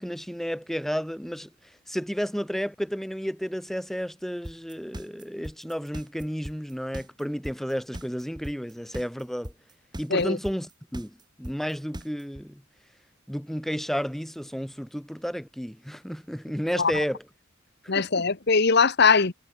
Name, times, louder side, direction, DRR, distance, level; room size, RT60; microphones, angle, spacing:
voice 1, 0.0-1.5 1.9-9.5 10.0-12.6 13.3-17.2 17.8-18.3, equal, ahead, 3.6 m, -32 dB
sound 1, 4.4-12.4, equal, 20° right, 6.4 m, -38 dB
voice 2, 17.9-19.3, left 5 dB, 55° left, 1.3 m, -21 dB
head